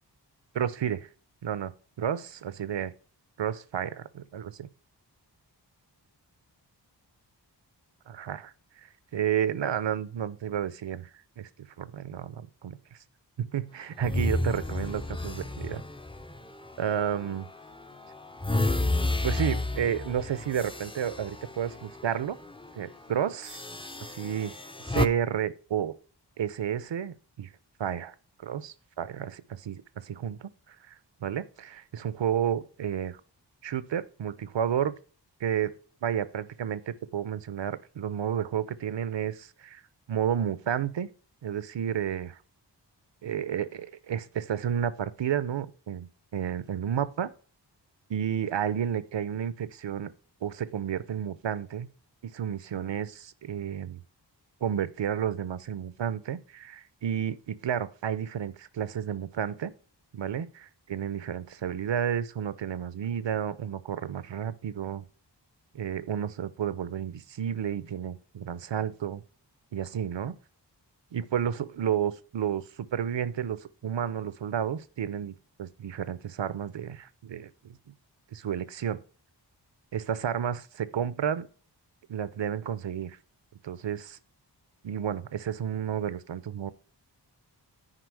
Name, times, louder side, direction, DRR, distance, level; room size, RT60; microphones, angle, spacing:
voice 1, 0.5-1.1 1.4-1.7 2.0-2.9 3.4-4.7 8.1-8.5 9.1-11.1 11.4-11.5 11.8-13.0 13.4-15.8 16.8-17.5 19.2-22.4 22.7-23.7 24.0-24.5 24.9-26.0 26.4-27.5 27.8-28.1 28.4-30.9 31.2-33.2 33.6-34.9 35.4-35.7 36.0-39.8 40.1-41.1 41.4-42.4 43.2-46.1 46.3-47.3 48.1-50.1 50.4-51.9 52.3-54.0 54.6-59.7 60.1-65.0 65.7-69.2 69.7-70.3 71.1-77.8 78.3-79.0 79.9-81.5 82.1-83.2 83.6-84.2 84.8-86.7, right 9 dB, 80° right, 0.8 m, -31 dB
sound 1, 14.0-17.3 17.8-22.1 22.4-22.7 23.5-25.1, left 2 dB, 15° left, 0.5 m, -31 dB
9.9 x 4.9 x 4.7 m
wide cardioid pair, 110°, 43 cm